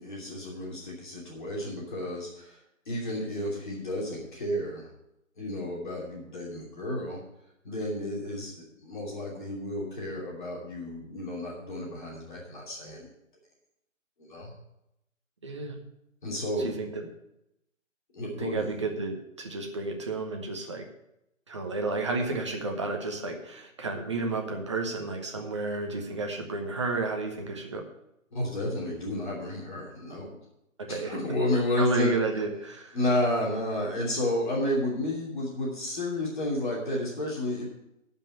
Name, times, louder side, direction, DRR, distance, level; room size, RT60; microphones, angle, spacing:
voice 1, 0.0-2.6 2.9-4.9 5.4-7.2 7.6-13.1 14.2-14.5 16.2-16.8 18.1-18.7 28.3-30.3 30.9-32.1 32.9-37.7, left 1 dB, 35° left, -4 dB, 2.9 m, -31 dB
voice 2, 15.4-15.8 16.6-17.0 18.4-20.8 21.5-27.8 30.8-31.2 31.8-33.0, right 3 dB, 20° right, 1 dB, 1.0 m, -32 dB
11.0 x 5.6 x 7.9 m, 0.83 s
hypercardioid pair, 170°, 39 cm